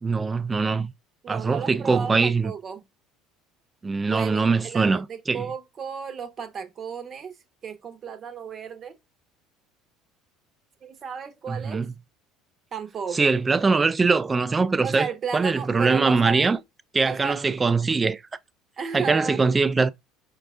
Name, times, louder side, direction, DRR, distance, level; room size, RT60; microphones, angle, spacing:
voice 1, 0.0-0.9 1.3-2.5 3.8-5.4 11.5-11.9 13.1-15.1 15.3-16.6 16.9-18.2 18.9-19.9, right 4 dB, 25° right, 0.4 m, -22 dB
voice 2, 1.2-2.8 4.1-7.4 7.6-8.9 10.8-11.9 12.7-13.3 14.8-16.6 17.0-17.4 18.8-19.4, right 6 dB, 45° right, 0.9 m, -34 dB
4.7 x 2.4 x 2.3 m
hypercardioid pair, 80°, 0 cm